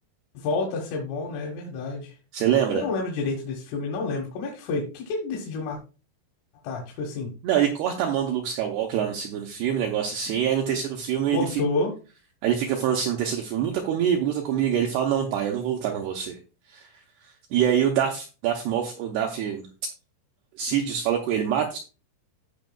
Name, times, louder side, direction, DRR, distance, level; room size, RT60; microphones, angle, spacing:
voice 1, 0.4-2.1 2.7-5.8 6.6-7.3 11.3-12.0, left 3 dB, 80° left, -1 dB, 4.0 m, -29 dB
voice 2, 2.3-2.9 7.4-11.6 12.4-16.4 16.7-16.9 17.5-19.7 20.6-21.8, right 9 dB, 85° right, 2 dB, 2.3 m, -25 dB
15.5 x 5.2 x 2.3 m, 0.33 s
omnidirectional pair, 5.7 m